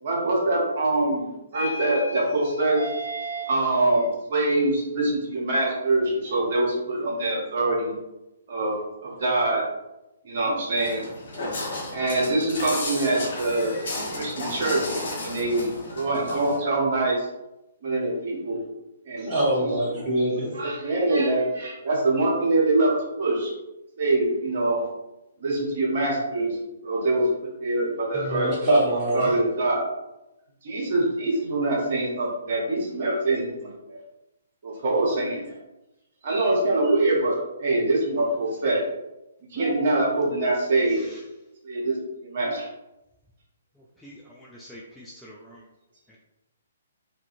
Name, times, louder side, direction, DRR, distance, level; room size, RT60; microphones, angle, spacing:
voice 1, 0.0-7.9 8.5-9.6 10.2-11.0 11.9-13.8 14.1-17.3 17.8-18.6 19.1-19.3 19.6-19.7 20.3-22.9 23.2-23.5 24.0-24.8 25.4-26.6 26.8-27.3 27.6-28.5 29.1-29.9 30.6-34.0 34.6-35.6 36.2-38.8 39.5-41.0 41.6-42.0 42.2-42.7, right 2 dB, 50° right, -3 dB, 0.9 m, -24 dB
Walk footsteps, 10.8-16.6, left 2 dB, 55° left, 1.2 m, -33 dB
voice 2, 19.2-20.6 28.1-29.3, right 1 dB, 20° right, -7 dB, 1.1 m, -24 dB
voice 3, 44.0-45.6, equal, 5° left, -5 dB, 0.3 m, -45 dB
2.5 x 2.5 x 2.5 m, 0.95 s
figure-of-eight pair, 130°, 0 cm